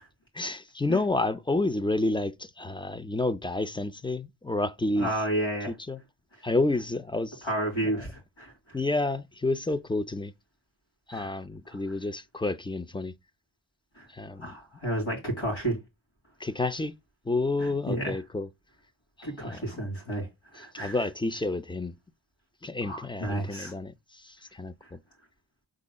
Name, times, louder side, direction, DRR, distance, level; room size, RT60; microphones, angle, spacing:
voice 1, 0.3-5.1 5.7-6.0 6.4-7.4 7.8-8.1 8.7-10.3 11.1-13.1 14.1-14.5 16.4-17.0 17.3-18.5 19.2-19.9 20.6-22.0 22.6-25.0, left 2 dB, 10° left, 0.3 m, -30 dB
voice 2, 5.0-5.7 7.4-8.5 11.1-11.3 14.0-14.1 14.4-15.8 17.6-18.2 19.2-20.3 20.5-20.9 22.8-23.7, right 1 dB, 85° left, 2.5 m, -31 dB
5.2 x 3.8 x 2.2 m
cardioid pair, 70°, 45 cm